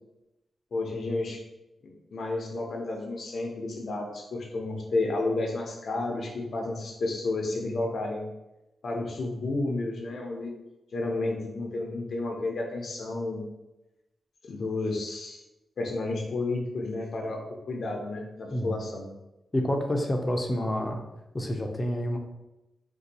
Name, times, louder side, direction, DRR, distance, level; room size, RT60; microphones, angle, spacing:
voice 1, 0.7-1.4 1.8-8.2 8.8-10.5 10.9-13.4 14.4-15.4 15.8-19.1, left 2 dB, 70° left, 1 dB, 0.6 m, -31 dB
voice 2, 19.5-21.0 21.3-22.2, equal, 25° left, 3 dB, 0.6 m, -28 dB
2.6 x 2.3 x 4.0 m, 0.95 s
cardioid pair, 65°, 0 cm